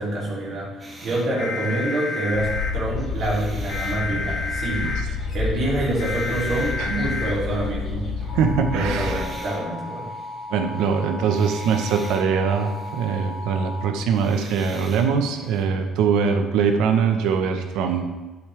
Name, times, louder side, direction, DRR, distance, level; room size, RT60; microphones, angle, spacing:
voice 1, 0.0-4.9 5.3-8.1 8.7-10.1, right 1 dB, 50° right, -5 dB, 2.7 m, -26 dB
sound 1, 0.8-2.7 3.1-5.2 5.8-7.8 8.7-13.6 14.0-15.6, right 2 dB, 20° right, 1.4 m, -46 dB
sound 2, 1.4-2.7 3.7-5.0 6.0-7.3 8.3-13.9, left 3 dB, 60° left, 1.7 m, -32 dB
sound 3, 2.3-9.2, left 4 dB, 35° left, 2.3 m, -29 dB
voice 2, 8.3-9.2 10.5-18.1, right 6 dB, 85° right, 5 dB, 0.9 m, -22 dB
10.5 x 5.2 x 3.3 m, 1.2 s
cardioid pair, 125°, 0 cm